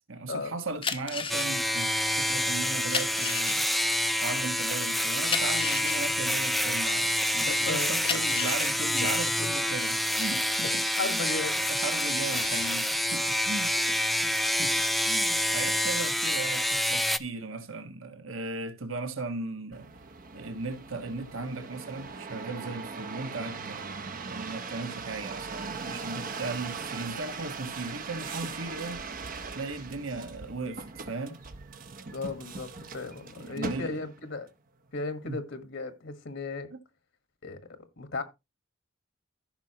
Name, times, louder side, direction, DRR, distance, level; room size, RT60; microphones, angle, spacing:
voice 1, 0.1-3.7 4.2-11.2 11.7-13.8 14.4-19.9 20.3-23.9 24.2-29.0 29.5-31.4 33.3-34.0 35.2-35.4 36.7-36.8, right 3 dB, 80° right, 1.4 m, -37 dB
sound 1, 0.7-7.3 7.8-11.7 12.1-12.8, left 6 dB, 25° left, 0.8 m, -35 dB
sound 2, 1.3-17.2, equal, ahead, 0.4 m, -27 dB
voice 2, 7.4-7.9 10.6-10.7 11.0-11.6 32.1-34.5 34.9-36.7 37.4-37.6 38.0-38.2, left 3 dB, 65° left, 1.5 m, -35 dB
sound 3, 19.7-34.3 34.9-35.4, right 4 dB, 45° right, 0.8 m, -40 dB
15.0 x 5.8 x 2.9 m
head